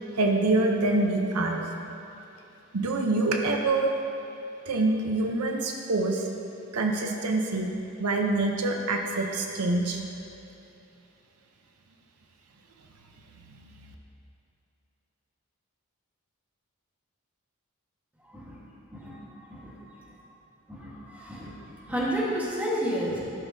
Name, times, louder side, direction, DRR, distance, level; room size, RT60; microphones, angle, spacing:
voice 1, 0.2-1.6 2.7-3.9 4.7-6.3 6.7-7.7 8.0-10.0, right 2 dB, 90° right, 3 dB, 0.7 m, -25 dB
voice 2, 20.7-23.2, equal, 5° right, -7 dB, 1.3 m, -31 dB
12.5 x 6.3 x 2.7 m, 2.9 s
head